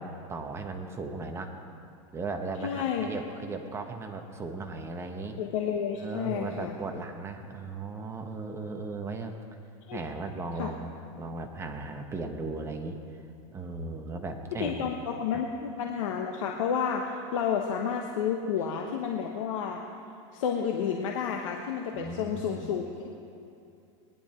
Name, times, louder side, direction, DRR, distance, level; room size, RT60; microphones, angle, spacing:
voice 1, 0.0-1.6 2.1-5.4 6.0-9.3 9.9-13.0 13.5-14.9 15.3-15.4 21.9-22.8, right 3 dB, 15° right, 4 dB, 1.2 m, -37 dB
voice 2, 2.6-3.1 5.4-6.7 9.9-10.0 10.6-10.7 14.5-19.8 20.3-23.1, left 7 dB, 80° left, 2 dB, 1.1 m, -31 dB
19.5 x 10.5 x 4.4 m, 2.6 s
supercardioid pair, 135°, 17 cm